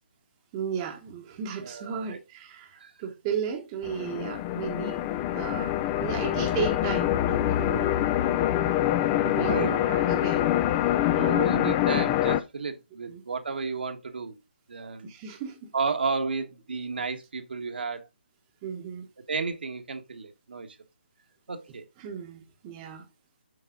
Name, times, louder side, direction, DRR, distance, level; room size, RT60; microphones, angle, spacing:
voice 1, 0.5-5.0 5.3-7.9 9.2-10.5 13.1-13.2 15.0-15.7 18.6-19.1 22.0-23.1, right 7 dB, 25° right, 1.1 m, -35 dB
voice 2, 1.6-2.2 2.8-2.9 9.3-9.8 11.1-14.4 14.7-15.1 15.7-18.1 19.3-20.8 21.5-21.9, right 4 dB, 70° right, 1.6 m, -32 dB
sound 1, 3.8-12.4, left 12 dB, 20° left, 0.5 m, -25 dB
7.7 x 4.9 x 3.8 m
figure-of-eight pair, 150°, 6 cm